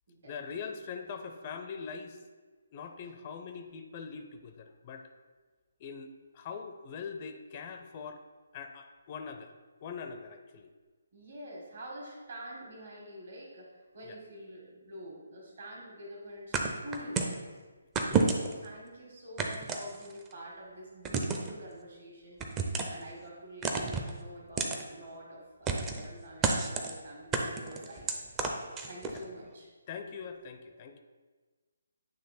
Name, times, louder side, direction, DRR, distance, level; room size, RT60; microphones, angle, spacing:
voice 1, 0.2-2.2 2.7-5.1 5.8-8.2 8.5-9.5 9.8-10.7 14.0-14.2 18.1-18.3 29.1-29.2 29.9-31.0, left 6 dB, 30° left, 6 dB, 0.4 m, -42 dB
voice 2, 11.1-17.6 18.2-22.4 22.9-28.2 28.9-29.7 30.8-31.0, equal, 55° right, -2 dB, 1.7 m, -47 dB
sound 1, 16.5-17.4 18.0-18.7 19.4-20.3 21.0-21.5 22.4-23.0 23.6-24.1 24.6-24.8 25.7-26.1 26.4-26.9 27.3-29.2, right 4 dB, 15° right, 0.5 m, -30 dB
9.0 x 3.1 x 4.2 m, 1.4 s
figure-of-eight pair, 140°, 0 cm